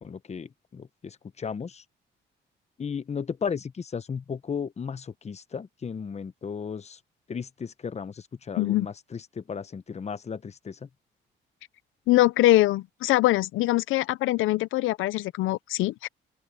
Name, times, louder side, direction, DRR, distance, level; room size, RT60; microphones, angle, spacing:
voice 1, 0.0-1.8 2.8-7.0 7.3-10.9, left 6 dB, 35° left, 1.0 m, -35 dB
voice 2, 8.6-8.9 12.1-16.1, left 16 dB, 85° left, 0.6 m, -23 dB
open air
cardioid pair, 90°, 20 cm